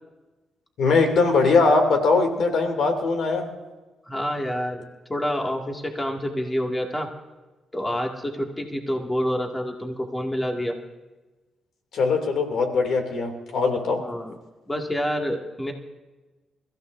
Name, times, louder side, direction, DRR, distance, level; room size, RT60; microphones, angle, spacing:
voice 1, 0.8-3.5 11.9-14.0, left 4 dB, 70° left, 4 dB, 2.7 m, -21 dB
voice 2, 4.1-4.8 5.1-7.1 7.7-10.8 14.0-14.4 14.7-15.7, equal, 15° left, 1 dB, 2.1 m, -27 dB
29.0 x 15.0 x 2.7 m, 1.2 s
cardioid pair, 90°, 0 cm